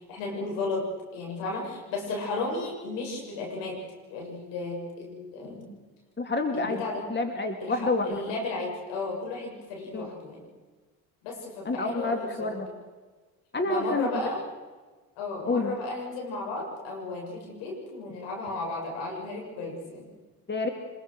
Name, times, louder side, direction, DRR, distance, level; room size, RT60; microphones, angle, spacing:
voice 1, 0.1-3.8 4.1-5.7 6.5-7.1 7.6-10.5 11.2-12.6 13.6-14.4 15.2-20.1, left 2 dB, 75° left, 0 dB, 7.2 m, -34 dB
voice 2, 6.2-6.8 7.1-8.1 9.9-10.1 11.6-12.7 13.5-14.3 15.5-15.7 20.5-20.7, left 2 dB, 25° left, 5 dB, 3.1 m, -28 dB
25.5 x 21.0 x 6.5 m, 1.3 s
hypercardioid pair, 60°, 43 cm